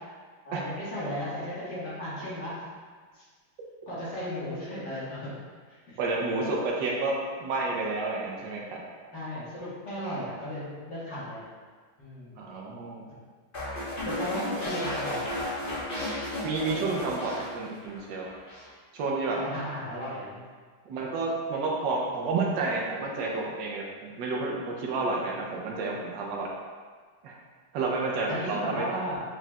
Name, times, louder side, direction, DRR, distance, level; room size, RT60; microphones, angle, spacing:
voice 1, 0.4-2.6 3.9-5.3 5.9-6.0 9.1-11.4 12.0-12.4 14.0-15.3 19.4-20.4 28.3-29.2, equal, 55° left, -9 dB, 2.0 m, -35 dB
voice 2, 6.0-8.8 12.4-13.0 16.4-18.3 18.9-19.4 20.9-26.5 27.2-27.4 27.7-29.0, right 3 dB, 70° right, -2 dB, 1.3 m, -30 dB
sound 1, 13.5-18.0 18.3-18.7, left 1 dB, 30° left, 1.1 m, -34 dB
4.8 x 4.6 x 2.3 m, 1.5 s
omnidirectional pair, 2.3 m